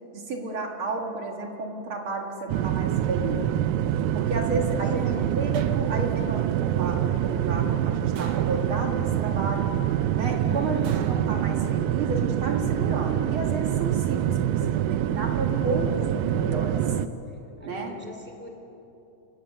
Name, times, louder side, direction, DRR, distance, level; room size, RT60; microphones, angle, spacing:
voice 1, 0.1-3.6 4.1-9.7 10.1-16.8 17.6-18.0, right 2 dB, 45° right, 2 dB, 2.1 m, -32 dB
sound 1, 2.5-17.1, right 11 dB, 85° right, 2.3 m, -25 dB
voice 2, 4.7-5.5 10.2-10.9 17.3-18.5, equal, 5° left, 3 dB, 2.0 m, -44 dB
sound 2, 5.5-6.3 8.2-9.1 10.8-12.0 13.4-13.9, right 7 dB, 65° right, 1.5 m, -45 dB
28.5 x 16.5 x 6.6 m, 3.0 s
omnidirectional pair, 3.8 m